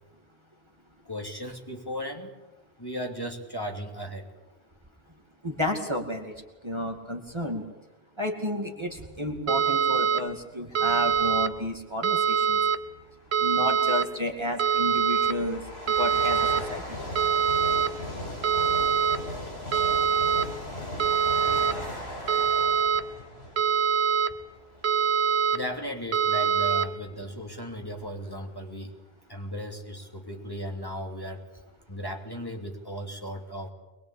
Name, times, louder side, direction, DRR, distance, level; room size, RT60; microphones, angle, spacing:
voice 1, 1.0-2.3 2.8-4.3 25.5-28.9 29.3-31.4 31.9-33.7, equal, 20° left, 2 dB, 3.0 m, -36 dB
voice 2, 5.4-6.3 6.6-7.6 8.2-12.6 13.4-15.6 16.0-17.0, left 1 dB, 25° right, 2 dB, 2.4 m, -31 dB
sound 1, 9.5-10.2 10.8-11.5 12.0-12.8 13.3-14.0 14.6-15.3 15.9-16.6 17.2-17.9 18.4-19.2 19.7-20.4 21.0-21.7 22.3-23.0 23.6-24.3 24.8-25.6 26.1-26.9, right 7 dB, 80° right, 1.3 m, -24 dB
sound 2, 11.3-11.6 12.7-12.8 13.6-25.0 25.6-25.8 26.6-26.7 26.9-28.5, left 1 dB, 75° left, 6.3 m, -38 dB
23.5 x 21.5 x 8.5 m, 1.1 s
omnidirectional pair, 1.1 m